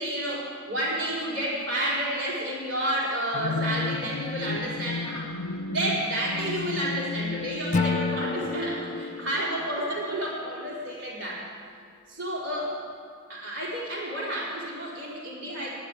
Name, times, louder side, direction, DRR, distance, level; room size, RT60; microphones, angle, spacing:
voice 1, 0.0-5.3 5.7-11.4 12.1-12.7 13.3-15.7, right 1 dB, 60° right, -5 dB, 4.2 m, -30 dB
sound 1, 3.3-9.7, left 3 dB, 75° left, 0.6 m, -34 dB
Acoustic guitar / Strum, 7.7-10.9, left 3 dB, 35° left, 0.4 m, -32 dB
10.0 x 9.5 x 9.3 m, 2.1 s
head